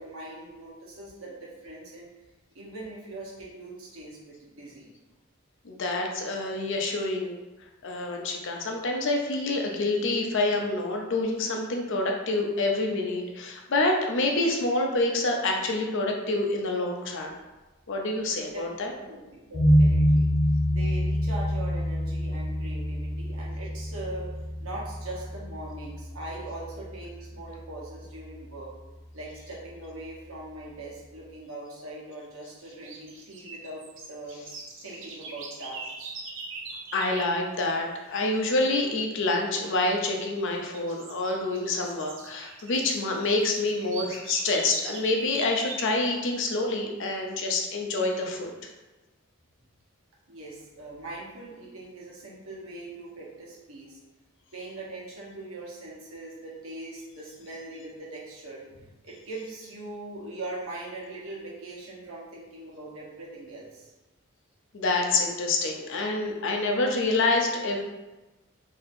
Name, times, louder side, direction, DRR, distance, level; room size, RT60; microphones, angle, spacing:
voice 1, 0.0-2.1 2.5-4.9 18.5-18.7 19.0-20.3 20.7-28.7 29.1-34.4 34.8-36.1 50.3-54.0 54.5-63.9, right 2 dB, 85° right, -4 dB, 1.0 m, -41 dB
voice 2, 5.6-7.4 7.8-17.4 17.9-18.9 36.9-48.5 64.7-67.8, left 2 dB, 65° left, 2 dB, 0.6 m, -27 dB
sound 1, 19.5-26.6, equal, 25° left, 1.1 m, -26 dB
sound 2, 32.7-37.4 39.6-40.0 40.4-46.0, right 3 dB, 65° right, 0.5 m, -42 dB
4.2 x 2.7 x 2.6 m, 1.1 s
head